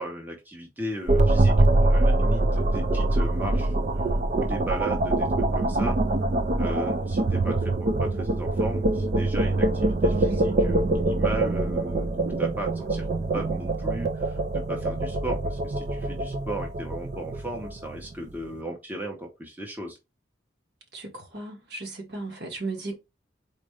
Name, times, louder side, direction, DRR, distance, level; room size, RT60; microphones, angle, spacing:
voice 1, 0.0-5.3 5.5-6.0 6.6-20.0, right 1 dB, 10° right, 0.9 m, -36 dB
sound 1, 1.1-18.3, right 2 dB, 40° right, 0.4 m, -24 dB
voice 2, 10.0-10.4 20.9-22.9, right 2 dB, 60° right, 1.5 m, -36 dB
4.3 x 2.5 x 4.8 m
head